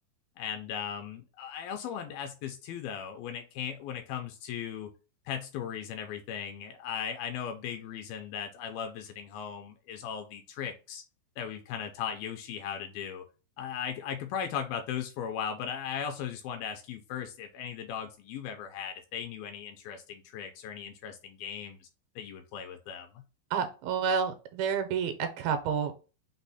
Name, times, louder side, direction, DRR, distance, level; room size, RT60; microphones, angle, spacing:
voice 1, 0.4-4.9 5.3-11.0 11.4-13.2 13.6-21.9 22.2-23.2, left 8 dB, 80° left, 5 dB, 2.2 m, -37 dB
voice 2, 23.5-26.0, right 6 dB, 85° right, 7 dB, 2.4 m, -29 dB
6.0 x 2.1 x 4.1 m, 0.33 s
omnidirectional pair, 4.6 m